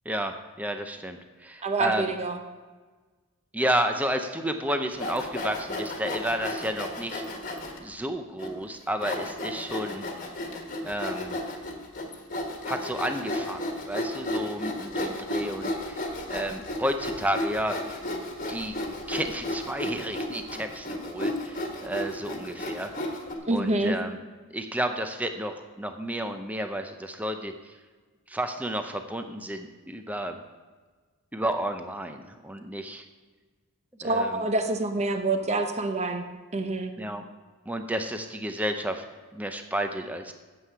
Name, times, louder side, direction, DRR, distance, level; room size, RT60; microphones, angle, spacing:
voice 1, 0.1-2.1 3.5-7.2 7.8-10.1 10.8-11.4 12.7-16.0 16.3-18.0 18.5-18.8 19.1-22.9 23.5-24.2 24.5-27.8 28.3-30.4 31.3-33.0 34.0-34.4 37.0-37.2 37.7-39.0 39.3-40.3, right 1 dB, 5° right, 6 dB, 0.6 m, -31 dB
voice 2, 1.6-2.4 23.5-24.0 34.0-36.2 36.5-36.9, right 2 dB, 30° right, 6 dB, 0.9 m, -26 dB
Sawing, 4.9-7.8 8.4-8.5 9.0-23.3, left 1 dB, 35° left, 1.5 m, -33 dB
9.5 x 8.1 x 5.7 m, 1.4 s
head